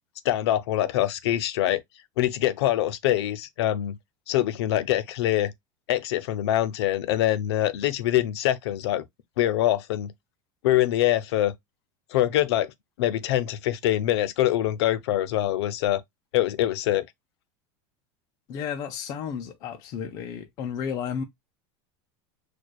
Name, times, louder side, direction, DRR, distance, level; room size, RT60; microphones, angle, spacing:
voice 1, 0.2-1.8 2.2-4.0 4.3-5.5 5.9-9.0 9.4-10.1 10.6-11.5 12.1-12.7 13.0-16.0 16.3-17.0, left 13 dB, 85° left, 0.6 m, -24 dB
voice 2, 18.5-21.2, left 7 dB, 25° left, 0.4 m, -32 dB
6.2 x 2.3 x 2.3 m
supercardioid pair, 180°, 13 cm